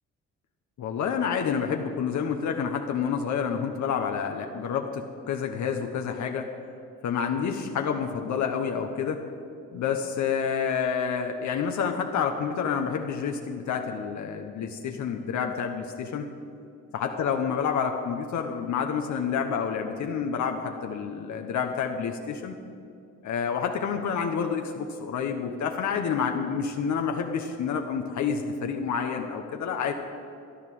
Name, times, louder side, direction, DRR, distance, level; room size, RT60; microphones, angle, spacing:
voice 1, 0.8-6.5 7.0-9.2 9.7-16.3 16.9-22.5 23.2-29.9, left 6 dB, 70° left, 3 dB, 1.2 m, -28 dB
14.5 x 10.5 x 7.7 m, 2.5 s
cardioid pair, 90°, 30 cm